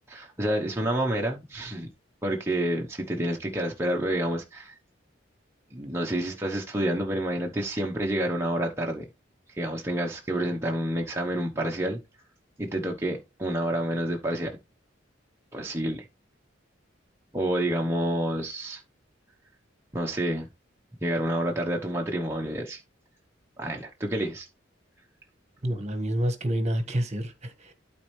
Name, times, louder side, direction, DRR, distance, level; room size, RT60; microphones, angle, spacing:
voice 1, 0.1-1.9 2.2-4.8 5.7-9.1 9.5-12.0 12.6-14.6 15.5-16.0 17.3-18.8 19.9-20.5 21.0-22.8 23.6-24.5, right 1 dB, 15° right, 1.0 m, -28 dB
voice 2, 25.6-27.7, right 1 dB, 35° right, 1.4 m, -28 dB
12.5 x 4.3 x 3.2 m
head